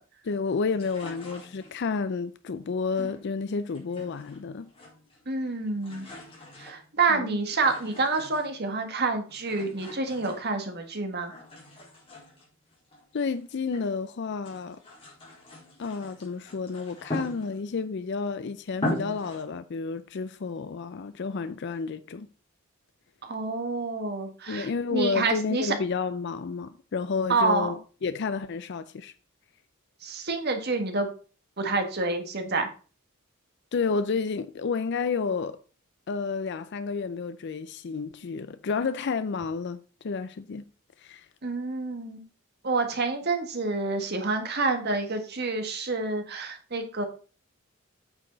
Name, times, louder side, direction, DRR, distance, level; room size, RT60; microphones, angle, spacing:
voice 1, 0.2-4.7 7.1-7.4 13.1-14.8 15.8-22.3 24.5-29.1 33.7-35.6 36.1-40.6 41.0-41.3, left 5 dB, 55° left, 0.4 m, -30 dB
sound 1, 0.7-2.0 2.9-4.4 4.7-5.3 5.6-8.7 9.3-10.9 11.3-13.9 14.3-17.9 18.3-18.4 18.7-19.5, left 1 dB, 25° left, 4.0 m, -40 dB
voice 2, 5.3-6.1 6.6-11.3 23.2-25.8 27.3-27.7 30.0-31.1 31.6-32.7 41.4-42.2 42.6-47.0, right 3 dB, 50° right, 1.7 m, -28 dB
8.9 x 6.6 x 3.9 m
head